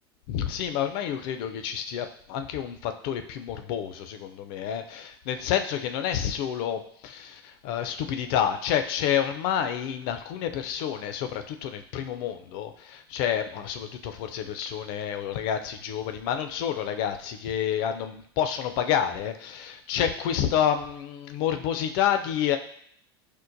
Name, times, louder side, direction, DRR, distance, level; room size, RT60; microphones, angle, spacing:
voice 1, 0.3-22.6, left 9 dB, 60° left, 8 dB, 0.4 m, -29 dB
4.5 x 2.1 x 2.5 m, 0.64 s
hypercardioid pair, 90°, 13 cm